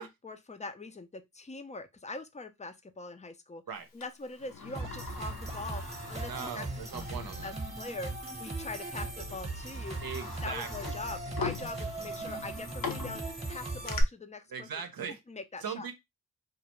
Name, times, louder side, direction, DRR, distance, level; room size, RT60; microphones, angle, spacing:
voice 1, 0.0-3.6 3.9-6.6 6.9-10.0 10.4-14.7 15.3-15.9, left 3 dB, 20° left, 0.4 m, -43 dB
Sliding door, 4.0-7.2 7.6-7.7 8.6-8.8 9.3-14.0, left 4 dB, 60° left, 0.6 m, -42 dB
sound 1, 4.7-14.0, right 2 dB, 15° right, 0.9 m, -39 dB
voice 2, 6.3-7.5 10.0-10.7 14.5-15.2 15.6-15.9, right 6 dB, 65° right, 0.6 m, -39 dB
2.4 x 2.1 x 2.9 m
cardioid pair, 50°, 38 cm